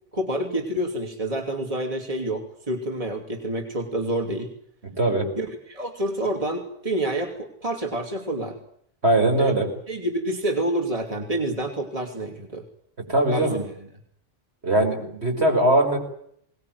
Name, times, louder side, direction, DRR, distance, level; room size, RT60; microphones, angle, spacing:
voice 1, 0.1-4.5 5.3-8.6 9.4-9.5 9.9-12.6 13.3-13.7, right 1 dB, 30° right, 2 dB, 2.9 m, -28 dB
voice 2, 4.8-5.3 9.0-9.7 13.1-13.6 14.6-16.0, right 1 dB, 60° right, 2 dB, 6.0 m, -20 dB
23.5 x 19.5 x 9.5 m, 0.69 s
omnidirectional pair, 1.3 m